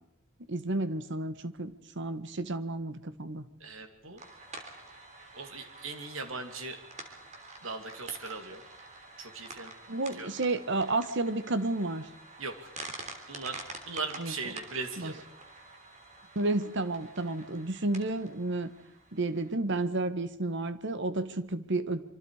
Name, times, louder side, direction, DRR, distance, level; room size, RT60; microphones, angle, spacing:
voice 1, 0.5-3.4 9.9-12.1 14.2-14.3 15.0-15.1 16.3-18.7 19.1-22.0, right 2 dB, 60° right, 12 dB, 1.4 m, -31 dB
voice 2, 3.6-4.2 5.3-6.8 7.6-8.6 9.2-9.7 10.1-10.3 12.4-12.7 13.3-15.2, right 4 dB, 80° right, 6 dB, 2.8 m, -39 dB
sound 1, 4.2-19.5, right 2 dB, 35° right, 3.4 m, -48 dB
26.0 x 25.0 x 5.0 m, 0.81 s
head